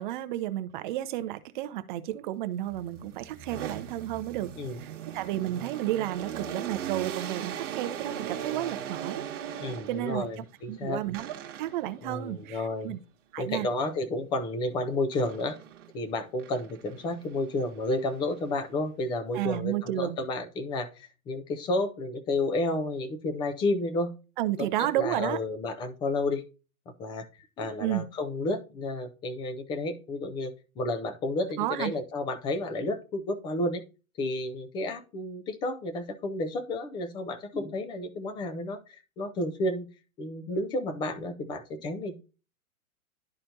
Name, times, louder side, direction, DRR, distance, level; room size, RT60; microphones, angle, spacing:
voice 1, 0.0-4.5 4.8-9.2 9.9-10.3 10.7-13.0 13.3-13.7 19.3-20.2 24.4-25.4 27.8-28.1 31.6-31.9, right 14 dB, 35° right, 0.6 m, -32 dB
sound 1, 2.6-10.3 11.1-12.0 15.1-15.9 16.4-18.8, right 9 dB, 55° right, 1.3 m, -39 dB
voice 2, 9.6-11.0 12.0-13.0 13.4-15.6 15.9-24.1 24.6-26.4 27.0-27.2 27.6-33.8 34.2-39.9 40.2-42.1, left 2 dB, 10° left, 0.4 m, -31 dB
11.5 x 4.2 x 2.7 m
figure-of-eight pair, 110°, 43 cm